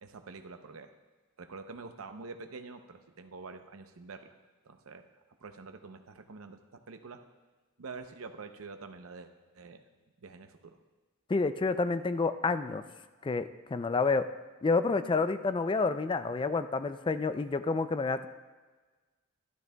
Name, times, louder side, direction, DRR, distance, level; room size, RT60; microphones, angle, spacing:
voice 1, 0.0-0.9 1.4-4.3 4.7-5.1 5.4-7.2 7.8-9.8 10.2-10.8, right 4 dB, 85° right, 7 dB, 0.7 m, -46 dB
voice 2, 11.3-12.8 13.2-14.3 14.6-18.3, left 4 dB, 25° left, 11 dB, 0.3 m, -29 dB
13.5 x 12.0 x 2.2 m, 1.3 s
head